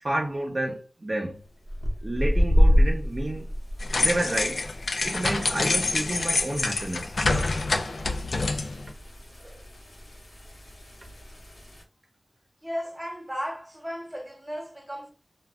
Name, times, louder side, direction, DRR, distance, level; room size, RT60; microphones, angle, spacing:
voice 1, 0.0-1.4 2.0-3.5 4.0-4.6 5.0-7.2 9.4-9.6, right 1 dB, 45° right, 0.6 m, -30 dB
sound 1, 1.6-11.8, equal, 55° left, 0.9 m, -28 dB
sound 2, 3.8-8.9, left 3 dB, 90° left, 0.3 m, -27 dB
voice 2, 12.6-15.1, equal, 10° right, 0.9 m, -35 dB
2.3 x 2.1 x 3.5 m
wide cardioid pair, 70°, 0 cm